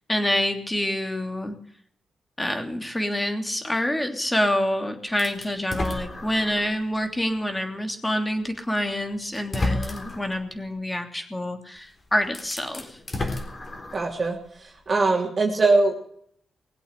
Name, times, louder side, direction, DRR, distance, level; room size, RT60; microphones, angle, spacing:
voice 1, 0.1-1.6 2.4-13.0, left 1 dB, 10° left, 5 dB, 3.0 m, -27 dB
sound 1, 5.2-6.8 7.4-7.5 8.7-8.8 9.3-10.3 11.8-11.9 12.2-14.2, left 2 dB, 35° left, 3.9 m, -31 dB
voice 2, 13.9-15.9, right 3 dB, 40° right, 0 dB, 3.0 m, -22 dB
21.0 x 8.3 x 8.2 m, 0.66 s
cardioid pair, 100°, 0 cm